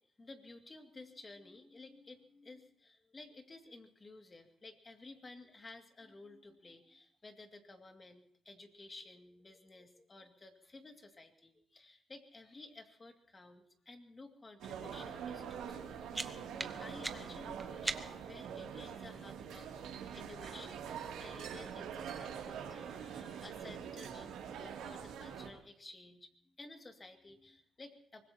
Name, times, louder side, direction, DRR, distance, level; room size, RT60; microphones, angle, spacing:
voice 1, 0.0-28.3, left 2 dB, 30° left, 5 dB, 2.2 m, -54 dB
sound 1, 14.6-25.5, right 7 dB, 90° right, 2.6 m, -44 dB
sound 2, 15.8-18.4, right 2 dB, 15° right, 1.0 m, -42 dB
24.0 x 20.5 x 2.9 m, 0.65 s
cardioid pair, 90°, 0 cm